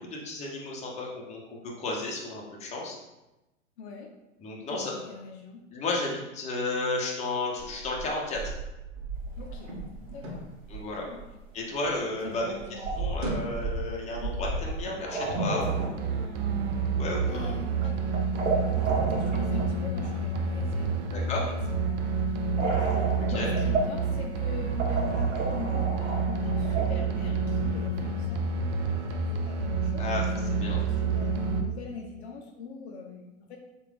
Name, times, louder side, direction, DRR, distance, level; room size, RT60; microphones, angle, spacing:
voice 1, 0.0-1.4 1.8-3.0 4.4-4.9 5.7-8.5 10.7-11.1 11.5-12.6 12.9-16.6 17.0-17.5 21.1-21.5 23.2-23.5 30.0-30.8, left 2 dB, 20° left, -2 dB, 0.8 m, -33 dB
voice 2, 3.8-4.1 4.6-5.6 9.4-9.7 10.1-10.5 11.0-11.3 12.2-13.0 14.2-14.3 17.3-18.0 18.5-21.5 21.8-30.2 30.7-33.6, left 4 dB, 60° left, 2 dB, 0.7 m, -42 dB
sound 1, 7.6-12.0 12.3-14.8, right 3 dB, 55° right, 1.2 m, -35 dB
sound 2, 9.3-9.8 10.1-10.4 10.9-11.0 11.2-11.3 12.3-13.2 14.2-16.2 16.5-17.0 17.7-19.7 20.0-20.4 22.6-24.0 24.5-24.6 24.8-26.9, right 3 dB, 80° right, 0.9 m, -32 dB
sound 3, 15.6-31.6, right 4 dB, 35° right, 0.4 m, -28 dB
3.5 x 2.5 x 3.4 m, 0.99 s
hypercardioid pair, 110°, 38 cm